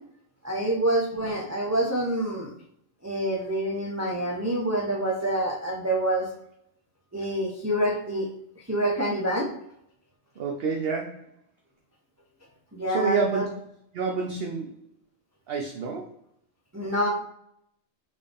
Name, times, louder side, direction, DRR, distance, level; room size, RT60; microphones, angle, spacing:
voice 1, 0.4-2.5 3.0-6.3 7.1-8.3 8.7-9.5 12.7-13.4 16.7-17.1, right 1 dB, 20° right, -3 dB, 0.5 m, -26 dB
voice 2, 10.4-11.3 12.9-13.5 13.9-14.8 15.5-16.1, right 5 dB, 60° right, 2 dB, 0.7 m, -28 dB
4.1 x 3.5 x 3.4 m, 0.71 s
omnidirectional pair, 1.4 m